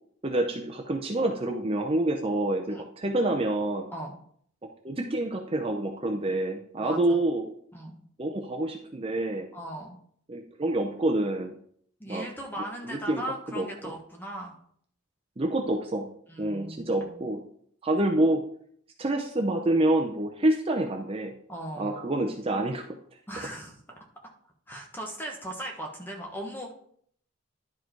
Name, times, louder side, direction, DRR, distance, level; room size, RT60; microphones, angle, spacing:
voice 1, 0.2-3.9 4.6-7.5 8.2-9.5 10.3-11.5 12.1-12.3 12.9-13.9 15.4-16.1 16.4-17.4 17.8-18.4 19.0-21.3 21.8-22.8, right 1 dB, 30° right, 3 dB, 0.6 m, -27 dB
voice 2, 6.8-7.2 7.7-8.0 9.5-10.0 12.0-14.5 16.3-17.2 21.5-22.0 23.3-23.8 24.7-26.7, right 1 dB, 10° left, 1 dB, 1.4 m, -38 dB
11.0 x 4.7 x 4.6 m, 0.62 s
head